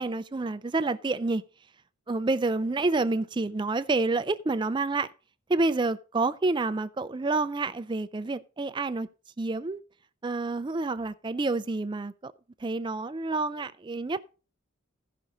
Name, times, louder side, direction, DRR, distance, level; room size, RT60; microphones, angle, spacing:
voice 1, 0.0-1.4 2.1-5.1 5.5-9.1 9.4-9.8 10.2-12.3 12.6-14.2, right 3 dB, 20° right, 0.4 m, -28 dB
15.0 x 6.0 x 3.9 m
head